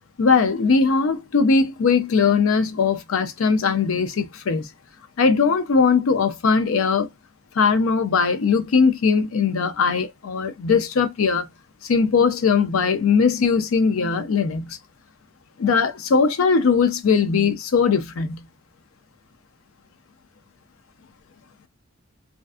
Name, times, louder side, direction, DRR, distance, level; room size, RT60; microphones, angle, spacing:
voice 1, 0.2-4.7 5.2-7.1 7.5-11.5 11.8-14.8 15.6-18.4, left 5 dB, 80° left, 0.5 m, -20 dB
2.5 x 2.3 x 2.4 m
head